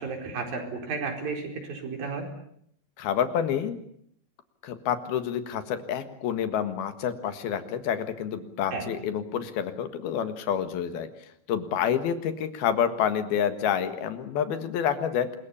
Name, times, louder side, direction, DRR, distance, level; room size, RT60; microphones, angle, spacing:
voice 1, 0.0-2.3 8.7-8.9, right 4 dB, 70° right, 3 dB, 6.2 m, -33 dB
voice 2, 3.0-3.8 4.6-11.1 11.5-15.4, left 8 dB, 85° left, 10 dB, 3.6 m, -28 dB
25.5 x 21.5 x 8.6 m, 0.69 s
omnidirectional pair, 4.3 m